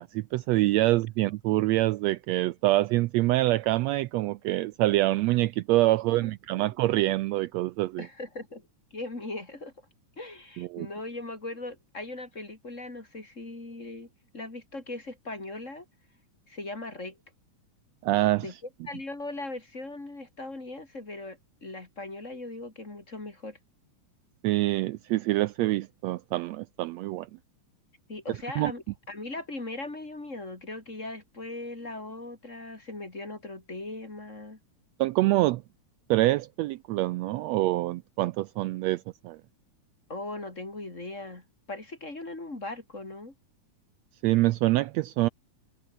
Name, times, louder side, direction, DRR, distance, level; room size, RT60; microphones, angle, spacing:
voice 1, 0.0-8.1 10.6-10.9 18.0-18.5 24.4-27.3 28.6-28.7 35.0-35.6 36.1-39.4 44.2-45.3, right 17 dB, 85° right, 1.5 m, -25 dB
voice 2, 6.1-6.7 8.0-8.6 8.9-9.7 10.2-15.9 16.5-17.2 18.4-18.5 18.9-23.6 28.1-34.6 40.1-43.3, left 2 dB, 20° left, 3.8 m, -39 dB
omnidirectional pair, 3.6 m